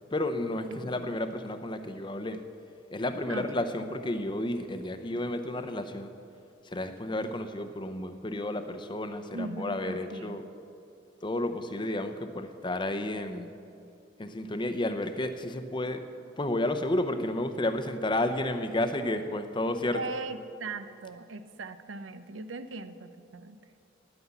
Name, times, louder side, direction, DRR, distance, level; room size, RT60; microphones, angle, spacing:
voice 1, 0.1-2.4 2.9-6.1 6.7-10.4 11.2-13.5 14.2-16.1 16.4-20.0, left 1 dB, 25° left, 9 dB, 0.7 m, -31 dB
voice 2, 3.3-3.6 9.3-10.4 19.9-23.6, right 3 dB, 85° right, 11 dB, 0.7 m, -39 dB
10.0 x 9.4 x 8.3 m, 2.5 s
head